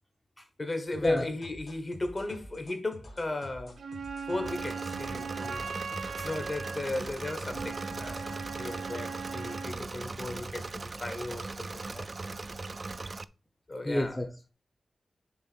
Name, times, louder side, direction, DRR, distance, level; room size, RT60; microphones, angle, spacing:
voice 1, 0.6-3.8 4.2-5.6 6.2-12.1 13.7-14.2, left 2 dB, 30° left, 1.2 m, -35 dB
sound 1, 0.9-8.9, left 2 dB, 70° left, 2.5 m, -48 dB
Wind instrument woodwind instrument, 3.8-9.8, right 5 dB, 75° right, 0.7 m, -39 dB
Engine / Mechanisms, 4.5-13.2, right 3 dB, 30° right, 0.3 m, -39 dB
voice 2, 13.8-14.5, left 1 dB, 10° left, 0.7 m, -31 dB
6.8 x 3.7 x 6.0 m
wide cardioid pair, 170°, 0 cm